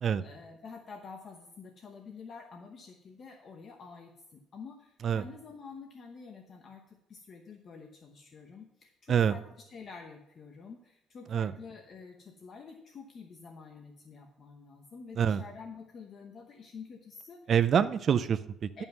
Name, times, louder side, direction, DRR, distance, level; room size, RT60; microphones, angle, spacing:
voice 1, 0.2-17.5 18.8-18.9, left 5 dB, 40° left, 3 dB, 0.9 m, -48 dB
voice 2, 17.5-18.8, right 8 dB, 40° right, 11 dB, 0.4 m, -26 dB
11.0 x 5.4 x 5.9 m, 0.85 s
cardioid pair, 155°, 0 cm